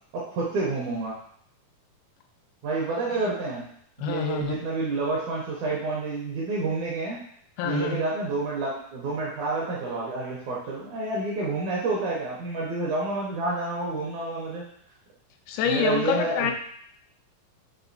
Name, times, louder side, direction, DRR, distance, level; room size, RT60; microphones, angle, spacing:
voice 1, 0.1-1.2 2.6-3.7 4.0-7.2 7.6-14.6 15.7-16.5, right 3 dB, 75° right, -5 dB, 1.9 m, -29 dB
voice 2, 4.0-4.5 7.6-8.0 15.5-16.5, left 7 dB, 90° left, 4 dB, 2.4 m, -27 dB
5.9 x 2.6 x 2.6 m, 0.62 s
omnidirectional pair, 4.2 m